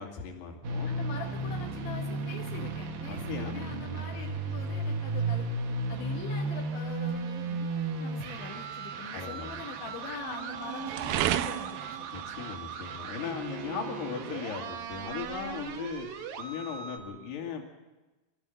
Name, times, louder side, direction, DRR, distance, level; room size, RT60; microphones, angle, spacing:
voice 1, 0.0-0.9 3.1-3.7 9.1-9.6 12.1-17.6, left 7 dB, 65° left, 2 dB, 4.4 m, -38 dB
sound 1, 0.6-17.0, right 3 dB, 60° right, 3.0 m, -35 dB
voice 2, 0.9-5.5 5.9-12.1, left 6 dB, 85° left, 0 dB, 4.0 m, -43 dB
sound 2, 1.3-16.8, right 12 dB, 80° right, 2.2 m, -40 dB
25.0 x 13.5 x 7.8 m, 1.1 s
omnidirectional pair, 5.1 m